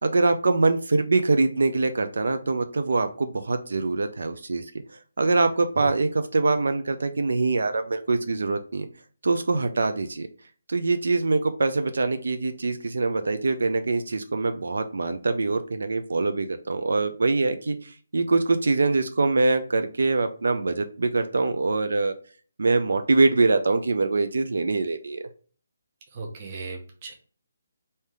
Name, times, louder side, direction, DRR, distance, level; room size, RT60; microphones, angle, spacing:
voice 1, 0.0-4.7 5.2-8.9 9.2-10.3 10.7-22.1 22.6-25.2, right 3 dB, 75° right, 8 dB, 0.4 m, -24 dB
voice 2, 26.1-27.1, right 3 dB, 30° right, 0 dB, 0.7 m, -37 dB
3.4 x 2.7 x 3.3 m, 0.42 s
hypercardioid pair, 165°, 0 cm